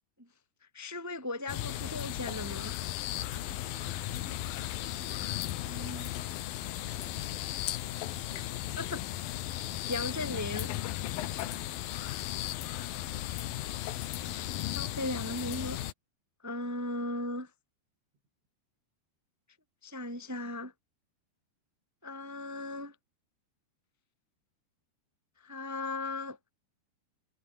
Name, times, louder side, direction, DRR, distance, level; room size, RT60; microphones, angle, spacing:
voice 1, 0.7-2.7 5.6-6.1 8.8-9.0 9.9-10.7 13.8-13.9 14.2-14.5 14.7-15.8 16.4-17.5 19.8-20.7 22.0-22.9 25.4-26.4, left 2 dB, 10° right, 0.7 m, -37 dB
sound 1, 1.5-15.9, left 14 dB, 70° left, 2.4 m, -36 dB
voice 2, 3.4-6.2 6.6-8.8 12.6-13.1, right 4 dB, 80° right, 10.5 m, -58 dB
omnidirectional pair, 5.4 m